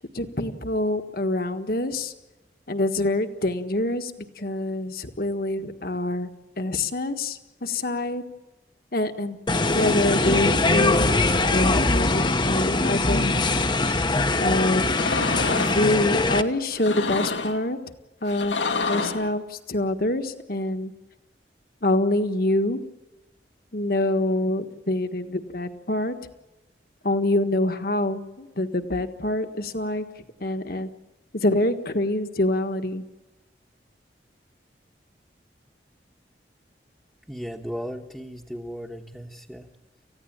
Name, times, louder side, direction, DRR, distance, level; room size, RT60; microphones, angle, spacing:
voice 1, 0.1-2.1 2.7-6.3 6.6-8.2 8.9-9.4 9.7-11.1 11.5-13.5 14.4-14.8 15.7-17.8 18.2-18.6 18.9-20.9 21.8-22.8 23.7-26.2 27.0-30.9 31.3-33.0, left 1 dB, 55° left, 8 dB, 1.6 m, -25 dB
sound 1, 9.5-16.4, left 2 dB, 25° left, 1.0 m, -22 dB
sound 2, 14.9-15.8 16.7-17.6 18.3-19.3, left 4 dB, 85° left, 1.8 m, -27 dB
voice 2, 37.3-39.7, equal, 5° right, 0 dB, 1.2 m, -36 dB
29.0 x 15.5 x 8.8 m, 1.1 s
head